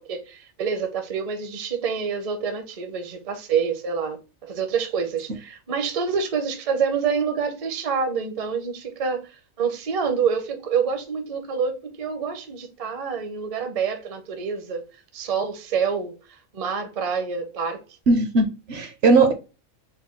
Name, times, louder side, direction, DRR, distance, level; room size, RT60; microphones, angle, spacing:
voice 1, 0.0-9.3 9.6-14.8 15.1-16.2 16.5-17.8, right 6 dB, 40° right, 0.6 m, -27 dB
voice 2, 18.1-19.3, right 3 dB, 60° right, 0.9 m, -18 dB
4.3 x 2.2 x 4.3 m
omnidirectional pair, 1.4 m